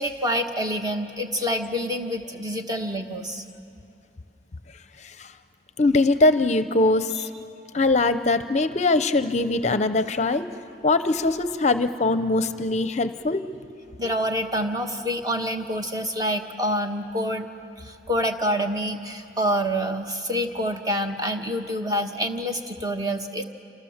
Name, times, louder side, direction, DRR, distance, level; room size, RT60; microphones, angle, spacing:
voice 1, 0.0-3.4 14.0-17.5 17.8-23.4, equal, 20° right, 4 dB, 1.4 m, -27 dB
voice 2, 5.8-7.3 7.7-10.4 10.8-13.5, left 2 dB, 40° left, 11 dB, 0.7 m, -22 dB
28.5 x 26.0 x 7.3 m, 2.6 s
head